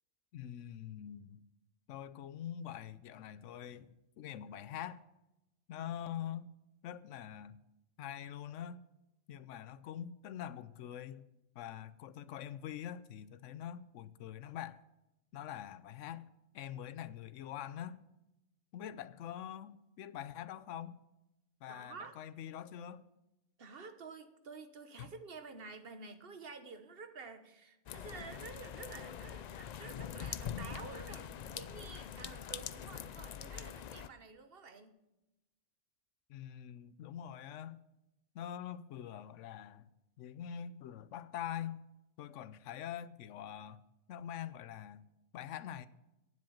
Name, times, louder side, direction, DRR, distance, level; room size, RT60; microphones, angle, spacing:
voice 1, 0.3-1.4 1.9-5.0 5.7-6.5 6.8-7.6 8.0-8.8 9.3-11.2 11.6-14.8 15.3-16.3 16.5-18.0 18.7-21.0 21.6-23.0 25.0-25.1 36.3-37.8 38.3-39.9 40.2-41.8 42.2-43.8 44.1-45.1 45.3-45.9, left 10 dB, 90° left, 0.9 m, -44 dB
voice 2, 21.7-22.2 23.6-35.0, right 4 dB, 55° right, 1.2 m, -50 dB
sound 1, 27.9-34.1, left 8 dB, 70° left, 0.4 m, -44 dB
9.6 x 7.7 x 7.1 m
omnidirectional pair, 1.2 m